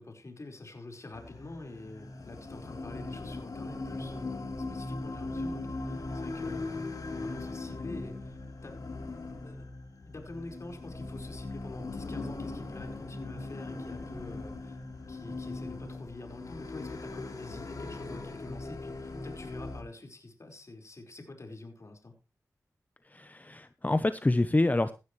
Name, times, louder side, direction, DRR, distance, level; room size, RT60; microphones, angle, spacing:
voice 1, 0.0-8.8 9.4-9.7 10.0-14.8 15.1-22.1, left 2 dB, 50° left, 3 dB, 4.9 m, -46 dB
sound 1, 1.1-19.8, left 2 dB, 65° left, 3.5 m, -39 dB
voice 2, 23.1-24.9, left 2 dB, 25° left, 12 dB, 0.9 m, -27 dB
17.0 x 11.5 x 3.3 m, 0.29 s
cardioid pair, 55°, 6 cm